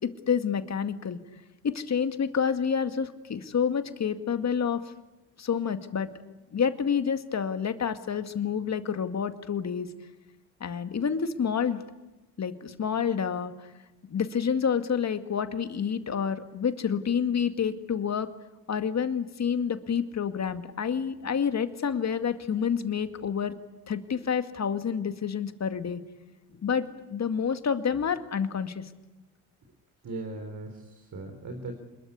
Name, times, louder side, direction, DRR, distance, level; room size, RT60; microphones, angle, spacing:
voice 1, 0.0-1.2 1.6-4.8 5.4-9.9 10.6-11.8 12.4-13.5 14.1-18.3 18.7-23.6 23.9-26.0 26.6-28.8, left 7 dB, 40° left, 9 dB, 2.1 m, -28 dB
voice 2, 30.0-31.7, right 2 dB, 50° right, 4 dB, 4.1 m, -38 dB
26.5 x 21.5 x 8.5 m, 1.1 s
hypercardioid pair, 50°, 41 cm